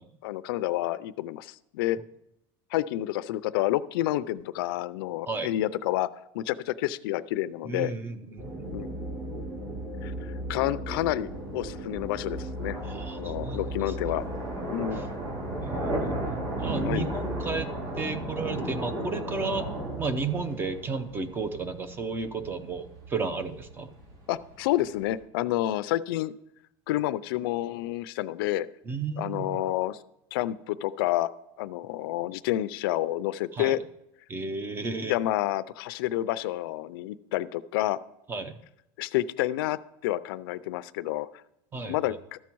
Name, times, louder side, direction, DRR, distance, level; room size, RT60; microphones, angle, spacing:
voice 1, 0.2-2.0 2.7-6.1 6.3-7.9 8.7-8.9 10.0-12.8 13.2-14.3 14.7-15.0 16.9-17.1 24.3-26.3 26.9-28.7 29.2-30.0 30.3-31.3 31.6-33.8 35.1-38.0 39.0-41.3 41.8-42.4, left 14 dB, 80° left, 16 dB, 0.5 m, -29 dB
voice 2, 7.7-8.9 12.8-13.6 15.6-16.2 16.6-17.7 18.0-19.7 20.0-23.9 28.9-29.6 33.5-33.8 34.3-35.1 38.3-38.6 41.7-41.9, right 4 dB, 20° right, 12 dB, 0.7 m, -33 dB
sound 1, 8.4-17.6, right 1 dB, 35° right, 2.6 m, -36 dB
sound 2, 11.3-25.2, right 1 dB, 55° right, 4.3 m, -36 dB
13.0 x 7.3 x 4.6 m, 0.86 s
supercardioid pair, 150°, 12 cm